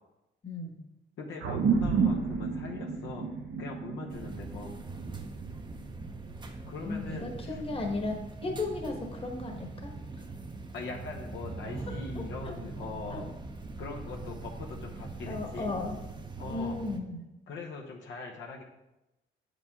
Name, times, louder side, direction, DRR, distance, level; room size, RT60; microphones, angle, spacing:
voice 1, 0.4-0.7 6.8-9.9 12.1-12.5 13.1-13.2 15.3-16.0 16.4-17.2, left 2 dB, 30° left, 2 dB, 1.3 m, -35 dB
voice 2, 1.2-3.3 3.6-4.7 6.7-7.6 10.7-13.3 13.8-15.7 16.4-16.8 17.5-18.6, left 4 dB, 75° left, 0 dB, 1.0 m, -41 dB
sound 1, 1.4-6.2, right 5 dB, 75° right, 0.9 m, -31 dB
sound 2, 4.1-17.0, right 3 dB, 25° right, 0.7 m, -42 dB
7.0 x 5.1 x 3.7 m, 0.95 s
cardioid pair, 90°, 20 cm